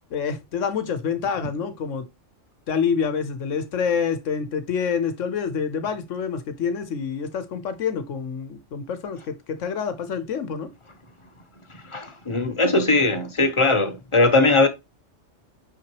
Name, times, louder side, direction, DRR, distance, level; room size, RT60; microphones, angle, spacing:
voice 1, 0.1-2.1 2.7-10.7, left 6 dB, 80° left, 1.2 m, -27 dB
voice 2, 11.8-14.7, left 3 dB, 25° left, 0.9 m, -20 dB
5.8 x 5.8 x 3.0 m
omnidirectional pair, 1.3 m